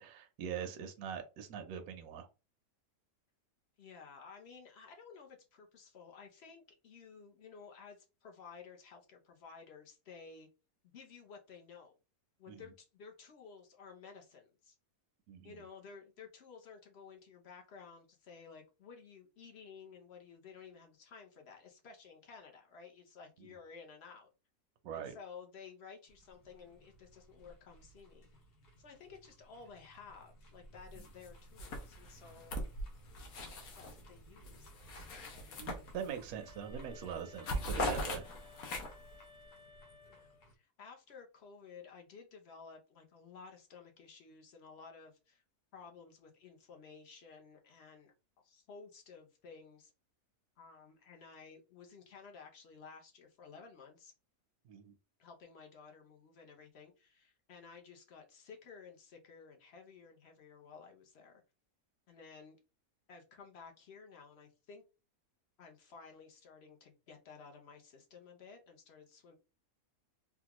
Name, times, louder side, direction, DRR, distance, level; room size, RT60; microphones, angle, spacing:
voice 1, 0.0-2.3 12.5-12.6 15.3-15.5 24.8-25.1 35.6-38.2 54.7-54.9, right 8 dB, 75° right, 6 dB, 1.0 m, -42 dB
voice 2, 3.8-10.5 10.8-12.0 12.4-14.8 15.4-24.3 24.9-28.3 28.8-32.7 33.7-34.7 40.1-45.4 45.7-48.1 48.4-49.9 50.6-54.1 55.2-61.4 62.1-62.6 63.1-64.8 65.6-69.3, left 5 dB, 55° left, 2 dB, 0.8 m, -54 dB
sound 1, 26.1-40.6, equal, 85° left, 1.5 m, -60 dB
sound 2, 31.0-31.3 31.6-34.0 34.4-36.3 36.7-36.9 37.2-39.1, left 1 dB, 70° left, 1.3 m, -40 dB
sound 3, 36.3-40.5, left 4 dB, 35° left, 1.5 m, -58 dB
3.6 x 2.3 x 2.9 m, 0.30 s
omnidirectional pair, 1.7 m